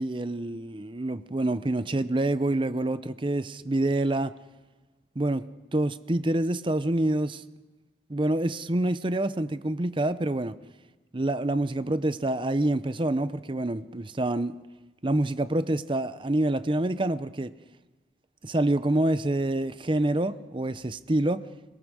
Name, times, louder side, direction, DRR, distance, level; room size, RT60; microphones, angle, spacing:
voice 1, 0.0-4.3 5.2-5.4 5.7-7.4 8.1-10.6 11.1-14.6 15.0-17.5 18.4-21.4, right 1 dB, 30° right, 0.7 m, -27 dB
26.5 x 18.0 x 6.3 m
head